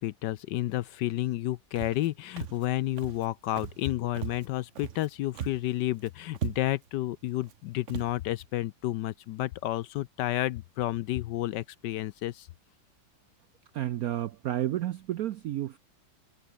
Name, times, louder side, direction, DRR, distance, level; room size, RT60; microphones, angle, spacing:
voice 1, 0.0-12.5, left 15 dB, 75° left, 1.1 m, -31 dB
Walk footsteps, 1.8-2.1 2.4-2.7 3.0-3.3 3.6-3.9 4.2-5.1 5.3-5.7 6.0-6.1 6.3-6.9 7.4-7.6 7.9-8.1, right 9 dB, 50° right, 0.9 m, -38 dB
voice 2, 13.7-15.8, right 13 dB, 80° right, 0.8 m, -31 dB
omnidirectional pair, 2.2 m